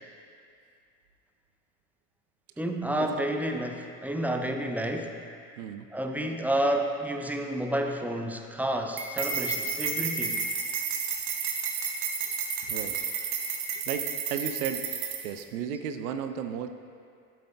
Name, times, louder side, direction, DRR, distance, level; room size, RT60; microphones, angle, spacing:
voice 1, 2.6-5.2 5.9-10.5, right 1 dB, 5° right, 3 dB, 0.6 m, -30 dB
voice 2, 5.6-5.9 12.6-13.0 13.9-14.9 15.2-16.7, right 8 dB, 80° right, 8 dB, 0.6 m, -34 dB
sound 1, 9.0-15.4, right 5 dB, 55° right, 1.2 m, -31 dB
12.5 x 7.6 x 2.2 m, 2.3 s
hypercardioid pair, 65°, 44 cm